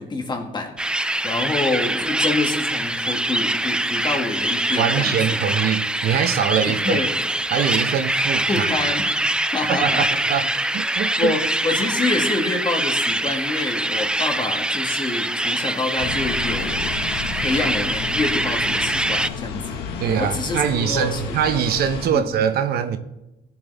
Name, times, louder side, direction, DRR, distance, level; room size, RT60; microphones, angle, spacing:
voice 1, 0.0-5.4 6.7-7.1 8.5-9.1 9.5-10.1 11.2-16.9 17.4-19.8 20.2-21.3 22.1-22.3, left 3 dB, 25° left, 2.1 m, -27 dB
sound 1, 0.8-19.3, right 1 dB, 5° right, 0.4 m, -24 dB
voice 2, 4.8-7.0 7.5-8.7 9.7-11.3 20.0-23.0, right 8 dB, 65° right, 0.9 m, -23 dB
sound 2, 16.0-22.1, left 5 dB, 85° left, 1.6 m, -31 dB
17.5 x 7.9 x 3.4 m
cardioid pair, 110°, 17 cm